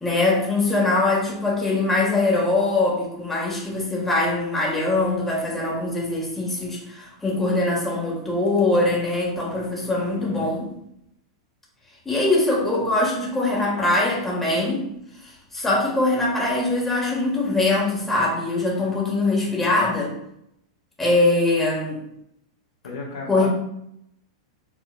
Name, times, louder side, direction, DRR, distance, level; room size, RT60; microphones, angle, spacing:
voice 1, 0.0-10.7 12.0-14.8 15.2-20.1 21.0-22.0 23.3-23.5, left 2 dB, 10° left, -4 dB, 1.5 m, -22 dB
voice 2, 10.1-10.5 22.8-23.5, left 3 dB, 75° left, -4 dB, 1.5 m, -34 dB
4.9 x 3.6 x 2.3 m, 0.77 s
hypercardioid pair, 100°, 3 cm